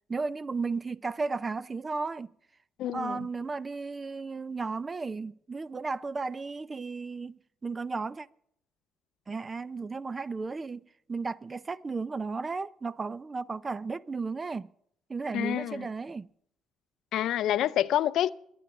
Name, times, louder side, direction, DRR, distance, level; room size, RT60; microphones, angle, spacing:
voice 1, 0.1-2.3 2.9-8.3 9.3-14.7 15.1-16.3, right 4 dB, 25° right, 0.5 m, -34 dB
voice 2, 2.8-3.3 15.3-15.9 17.1-18.3, left 12 dB, 70° left, 0.5 m, -27 dB
22.0 x 9.4 x 5.8 m
cardioid pair, 95°, 0 cm